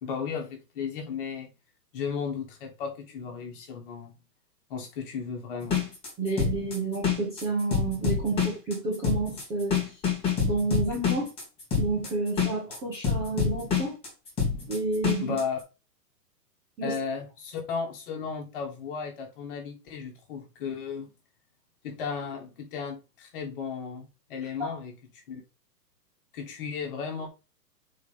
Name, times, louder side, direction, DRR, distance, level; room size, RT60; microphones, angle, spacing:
voice 1, 0.0-1.5 1.9-4.1 4.7-5.8 15.2-15.6 16.8-21.1 21.8-25.4 26.3-27.3, left 6 dB, 35° left, 2.1 m, -35 dB
sound 1, 5.6-15.4, left 6 dB, 10° left, 1.9 m, -27 dB
voice 2, 6.2-9.8 10.4-11.3 11.8-14.0 14.7-15.4 16.8-17.0 24.6-24.7, right 3 dB, 5° right, 0.6 m, -30 dB
6.2 x 4.6 x 3.6 m
hypercardioid pair, 160°, 49 cm